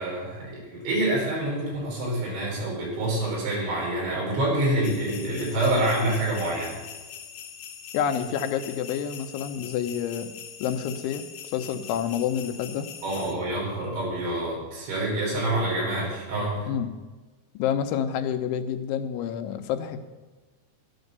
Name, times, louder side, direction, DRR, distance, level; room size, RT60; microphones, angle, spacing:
voice 1, 0.0-6.8 13.0-16.7, right 1 dB, 75° right, -3 dB, 7.3 m, -27 dB
sound 1, 4.8-13.3, left 8 dB, 70° left, 3.3 m, -42 dB
voice 2, 7.9-10.3 10.6-11.2 11.5-12.9 16.7-16.9 17.5-20.0, left 8 dB, 85° left, 7 dB, 3.3 m, -28 dB
13.0 x 10.5 x 6.7 m, 1.3 s
omnidirectional pair, 5.3 m